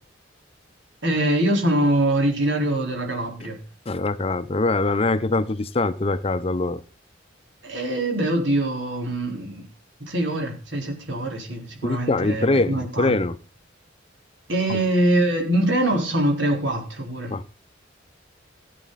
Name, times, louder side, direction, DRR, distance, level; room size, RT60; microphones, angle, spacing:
voice 1, 1.0-3.6 7.6-9.6 10.0-13.1 14.5-17.4, right 1 dB, 70° right, 4.1 m, -23 dB
voice 2, 3.9-6.8 11.8-13.4 14.7-14.8 17.3-17.4, left 2 dB, 30° left, 0.6 m, -23 dB
16.0 x 8.5 x 4.1 m
head